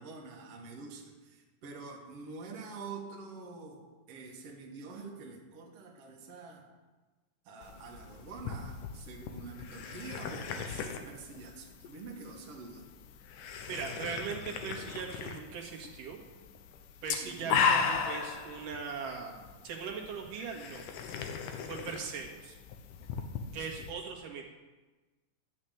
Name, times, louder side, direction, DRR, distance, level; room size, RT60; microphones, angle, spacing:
voice 1, 0.0-3.8 4.1-6.7 7.4-12.9 17.2-17.6 23.8-23.9, right 4 dB, 50° right, -1 dB, 2.5 m, -46 dB
sound 1, 7.6-23.9, left 6 dB, 75° left, 2.5 m, -37 dB
voice 2, 13.7-16.2 17.0-19.4 19.6-20.8 21.7-22.6 23.5-24.4, right 5 dB, 70° right, 0 dB, 3.3 m, -39 dB
13.5 x 6.4 x 9.1 m, 1.2 s
omnidirectional pair, 4.0 m